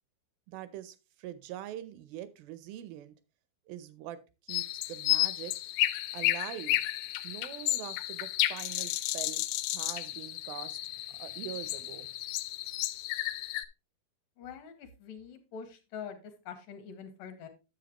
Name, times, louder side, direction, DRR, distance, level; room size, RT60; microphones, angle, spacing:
voice 1, 0.5-3.2 3.7-5.5 6.1-6.8 7.2-9.4 9.7-12.1, right 12 dB, 80° right, 14 dB, 2.3 m, -44 dB
sound 1, 4.5-13.7, left 17 dB, 90° left, 2.6 m, -32 dB
voice 2, 14.4-17.5, left 7 dB, 70° left, 8 dB, 2.6 m, -45 dB
10.0 x 7.4 x 2.9 m, 0.28 s
omnidirectional pair, 4.5 m